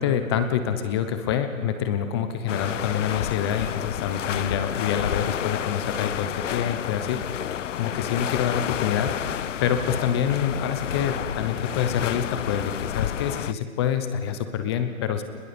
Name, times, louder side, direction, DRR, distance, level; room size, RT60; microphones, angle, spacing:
voice 1, 0.0-7.2 7.8-15.2, left 8 dB, 20° left, 9 dB, 0.8 m, -26 dB
sound 1, 2.5-13.5, left 10 dB, 60° left, 0.5 m, -30 dB
28.5 x 21.0 x 4.4 m, 2.3 s
hypercardioid pair, 145°, 41 cm